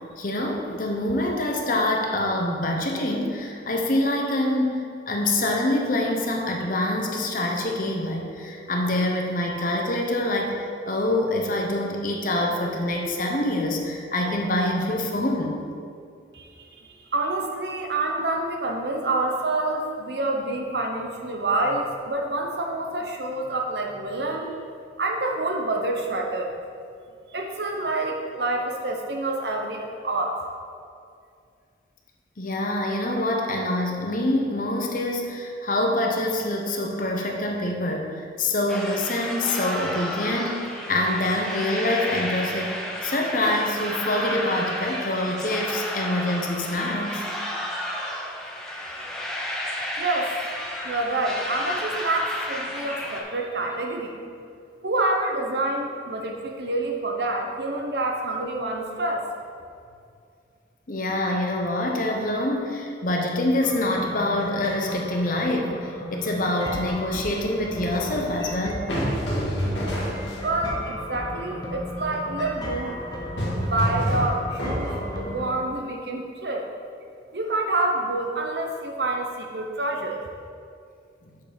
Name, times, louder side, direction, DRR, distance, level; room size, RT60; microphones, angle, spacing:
voice 1, 0.2-15.6 32.4-47.2 60.9-68.9 70.1-70.4, left 1 dB, 50° left, 1 dB, 0.9 m, -25 dB
voice 2, 16.3-24.5 25.0-26.5 27.3-30.4 50.0-50.3 50.8-54.1 54.8-59.2 70.4-73.0 73.6-76.7 77.3-80.2, right 2 dB, 65° right, 2 dB, 0.9 m, -27 dB
sound 1, 38.7-53.2, left 1 dB, 5° left, 0.7 m, -32 dB
sound 2, 63.6-75.5, left 1 dB, 25° left, 1.1 m, -35 dB
sound 3, 67.7-70.7 73.0-75.4, equal, 85° left, 2.0 m, -28 dB
7.1 x 5.1 x 5.2 m, 2.3 s
head